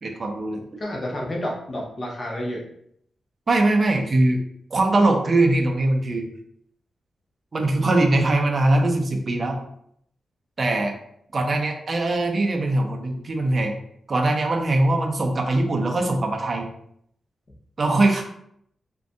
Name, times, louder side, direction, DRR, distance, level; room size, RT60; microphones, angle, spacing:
voice 1, 0.0-0.6 3.5-4.4 4.7-6.3 7.5-9.6 10.6-10.9 11.3-13.7 14.1-16.7 17.8-18.2, right 2 dB, 35° right, 2 dB, 0.4 m, -21 dB
voice 2, 0.8-2.6, equal, 35° left, -2 dB, 0.6 m, -30 dB
2.5 x 2.2 x 2.5 m, 0.70 s
wide cardioid pair, 155°, 0 cm